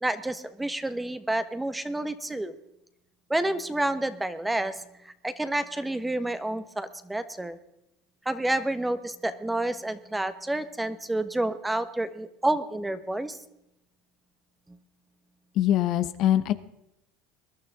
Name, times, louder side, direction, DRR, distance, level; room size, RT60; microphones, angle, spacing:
voice 1, 0.0-2.5 3.3-7.6 8.2-13.4 14.7-14.8, right 1 dB, 10° right, 11 dB, 1.4 m, -29 dB
voice 2, 15.5-16.5, left 12 dB, 55° left, 12 dB, 1.1 m, -23 dB
21.5 x 12.0 x 3.7 m, 0.83 s
supercardioid pair, 100°, 0 cm